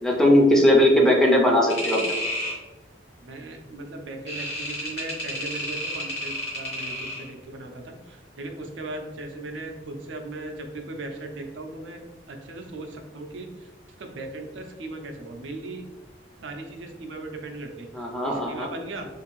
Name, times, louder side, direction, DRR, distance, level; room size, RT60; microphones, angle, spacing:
voice 1, 0.0-2.0 17.9-18.7, left 1 dB, 5° left, -1 dB, 0.4 m, -19 dB
sound 1, 1.7-2.6 4.3-7.3, equal, 65° left, 1.2 m, -31 dB
voice 2, 3.3-7.9 8.4-12.0 12.3-13.5 14.0-15.8 16.4-17.9 18.2-19.1, right 2 dB, 80° right, 4 dB, 0.4 m, -37 dB
2.5 x 2.5 x 3.0 m, 1.1 s
head